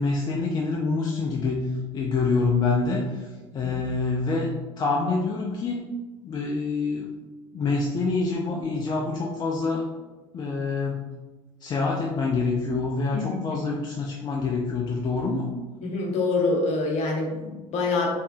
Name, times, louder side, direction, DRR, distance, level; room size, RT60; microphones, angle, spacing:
voice 1, 0.0-3.3 3.5-5.8 6.2-7.1 7.5-9.9 10.3-11.0 11.6-15.5, left 4 dB, 25° left, -1 dB, 0.4 m, -26 dB
voice 2, 13.1-13.6 15.8-18.1, left 3 dB, 40° left, 0 dB, 1.0 m, -26 dB
4.3 x 3.1 x 2.7 m, 1.2 s
figure-of-eight pair, 70°, 16 cm